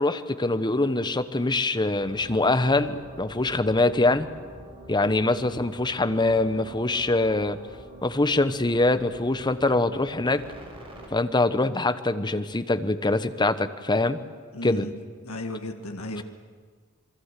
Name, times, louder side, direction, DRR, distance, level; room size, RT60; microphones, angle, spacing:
voice 1, 0.0-4.3 4.9-7.6 8.0-10.4 11.1-14.2 14.6-14.9, left 2 dB, 20° left, 11 dB, 1.0 m, -24 dB
sound 1, 2.0-11.1, equal, 25° right, 5.7 m, -46 dB
voice 2, 14.5-14.9 15.2-16.2, left 1 dB, 75° left, 4 dB, 1.8 m, -34 dB
27.5 x 21.5 x 8.3 m, 1.5 s
head